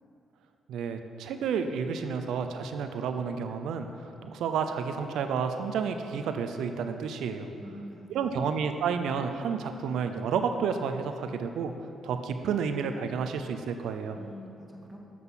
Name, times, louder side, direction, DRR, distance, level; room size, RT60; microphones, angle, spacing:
voice 1, 0.7-7.5 8.1-11.7 12.0-14.2, right 6 dB, 85° right, 7 dB, 0.5 m, -31 dB
voice 2, 7.6-8.5 14.2-15.0, equal, 10° right, 0 dB, 1.3 m, -45 dB
7.5 x 5.8 x 5.7 m, 2.6 s
cardioid pair, 80°, 0 cm